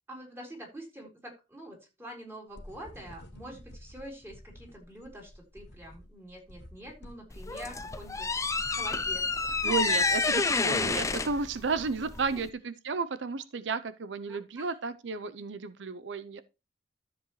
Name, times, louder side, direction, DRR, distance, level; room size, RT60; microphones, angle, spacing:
voice 1, 0.1-10.0 12.3-12.4 14.3-14.7, right 1 dB, 15° right, 3.9 m, -46 dB
sound 1, 2.5-10.1, equal, 70° left, 1.5 m, -51 dB
sound 2, 7.3-12.5, left 4 dB, 20° left, 0.6 m, -29 dB
voice 2, 9.6-16.4, right 4 dB, 90° right, 0.6 m, -33 dB
13.0 x 7.1 x 3.1 m
head